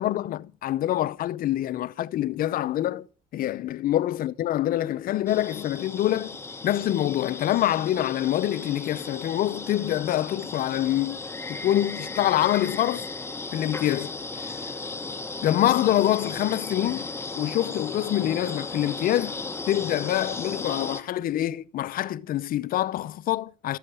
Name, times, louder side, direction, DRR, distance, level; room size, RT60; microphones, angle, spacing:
voice 1, 0.0-3.1 3.3-6.4 6.6-11.2 11.5-13.1 13.5-14.6 15.4-17.1 17.3-19.4 19.7-23.8, left 13 dB, 65° left, 0.6 m, -25 dB
sound 1, 5.3-21.0, left 3 dB, 15° left, 1.2 m, -36 dB
14.0 x 7.1 x 6.9 m
cardioid pair, 90°, 16 cm